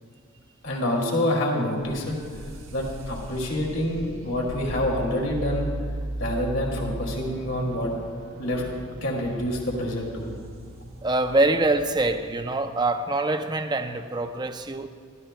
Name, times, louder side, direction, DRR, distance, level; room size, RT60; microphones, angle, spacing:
voice 1, 0.6-2.2 2.7-5.7 6.2-7.9 8.4-8.6 9.0-10.3, left 1 dB, 55° left, -1 dB, 2.4 m, -27 dB
sound 1, 1.8-12.5, right 1 dB, 65° right, 1.1 m, -38 dB
voice 2, 11.0-14.9, right 2 dB, 20° right, 7 dB, 0.5 m, -24 dB
24.5 x 13.5 x 2.2 m, 2.2 s
head